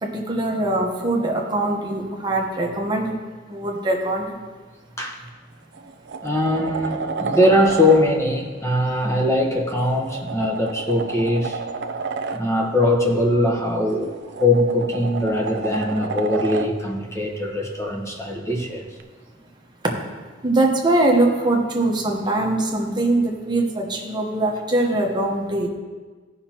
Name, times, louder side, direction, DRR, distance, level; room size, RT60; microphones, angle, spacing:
voice 1, 0.0-3.1 3.5-4.3 20.4-25.7, right 2 dB, 25° right, 0 dB, 1.1 m, -22 dB
sound 1, 5.1-5.3 5.7-8.0 9.7-12.4 13.9-16.7 19.0-19.1, right 4 dB, 60° right, 0.5 m, -30 dB
voice 2, 6.2-11.6 12.3-18.8, left 1 dB, 15° left, 0 dB, 1.2 m, -21 dB
15.0 x 5.8 x 3.0 m, 1.4 s
head